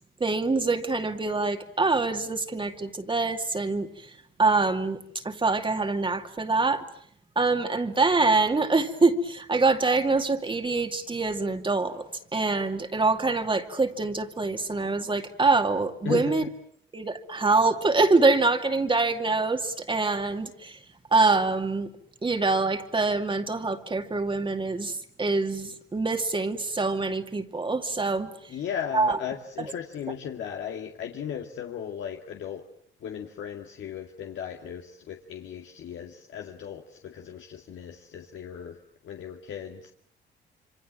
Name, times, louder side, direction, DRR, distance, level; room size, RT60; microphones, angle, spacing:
voice 1, 0.2-6.9 7.4-16.4 16.9-20.8 21.1-21.9 22.2-28.5 28.9-29.2 29.6-29.7, right 3 dB, 25° right, 6 dB, 2.4 m, -25 dB
voice 2, 16.0-16.5 28.5-32.6 33.0-38.8 39.0-39.9, left 8 dB, 70° left, 2 dB, 2.2 m, -36 dB
27.5 x 25.0 x 7.6 m, 0.65 s
cardioid pair, 90°, 20 cm